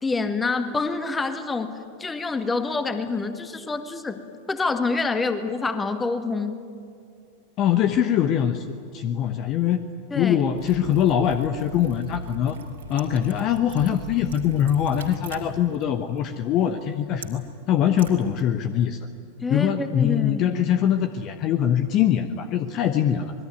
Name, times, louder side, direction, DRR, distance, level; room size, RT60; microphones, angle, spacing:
voice 1, 0.0-4.2 4.5-6.6 10.1-10.4 19.4-20.6, left 3 dB, 15° left, 9 dB, 1.8 m, -27 dB
voice 2, 7.6-8.6 8.9-9.8 10.1-12.6 12.9-17.4 17.7-19.0 19.5-23.3, left 10 dB, 35° left, 10 dB, 1.0 m, -22 dB
Liquid, 10.5-18.8, right 3 dB, 65° right, 2.7 m, -41 dB
26.0 x 21.5 x 9.5 m, 2.4 s
figure-of-eight pair, 90°, 0 cm